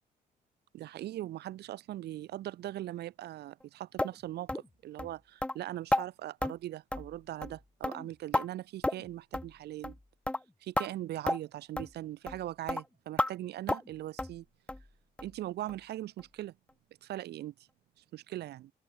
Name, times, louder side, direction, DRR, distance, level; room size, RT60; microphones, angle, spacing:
voice 1, 0.7-10.0 10.6-14.4 15.2-16.5 17.0-17.5 18.0-18.7, right 14 dB, 75° right, 1.1 m, -40 dB
sound 1, 4.0-4.1 4.5-4.7 5.0-5.1 5.4-5.5 5.9-6.0 6.4-6.5 6.9-7.1 7.4-7.6 7.8-8.4 8.8-9.1 9.3-9.5 9.8-10.0 10.3-10.4 10.8-10.9 11.3-11.4 11.8-11.9 12.3-12.4 12.7-12.8 13.2-13.3 13.7-13.9 14.2-14.4 14.7-14.8 15.2-15.3 15.7-15.8 16.2-16.3, left 1 dB, 5° left, 0.6 m, -31 dB
open air
cardioid pair, 120°, 17 cm